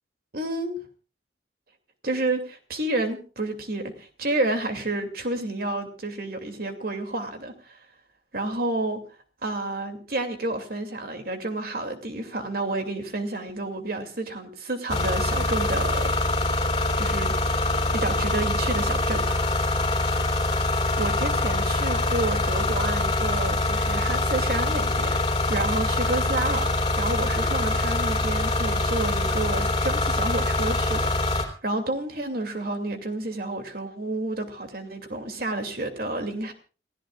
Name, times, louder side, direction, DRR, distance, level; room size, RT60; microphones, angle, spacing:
voice 1, 0.3-0.8 2.0-7.8 8.3-9.0 9.4-16.1 17.0-17.3 17.9-19.4 20.1-20.2 21.0-25.2 25.5-31.1 31.4-36.5, right 2 dB, 55° right, 6 dB, 2.7 m, -30 dB
sound 1, 14.9-31.4, left 2 dB, 25° left, 3.2 m, -24 dB
29.0 x 16.0 x 2.4 m, 0.36 s
head